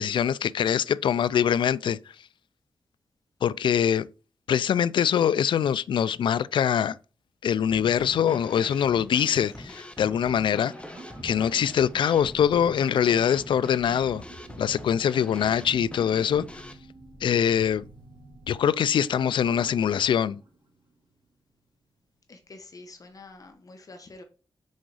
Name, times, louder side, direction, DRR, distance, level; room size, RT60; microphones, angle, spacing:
voice 1, 0.0-2.0 3.4-4.1 4.5-7.0 7.4-10.7 11.2-14.2 14.6-16.4 17.2-17.8 18.5-20.4, left 8 dB, 90° left, 0.3 m, -23 dB
Drum kit / Snare drum, 7.7-16.7, left 1 dB, 15° left, 1.0 m, -43 dB
sound 1, 9.2-21.2 21.5-21.6, right 2 dB, 60° right, 2.4 m, -49 dB
voice 2, 22.3-24.2, left 2 dB, 45° left, 1.1 m, -47 dB
6.4 x 4.7 x 4.8 m
wide cardioid pair, 110°, 8 cm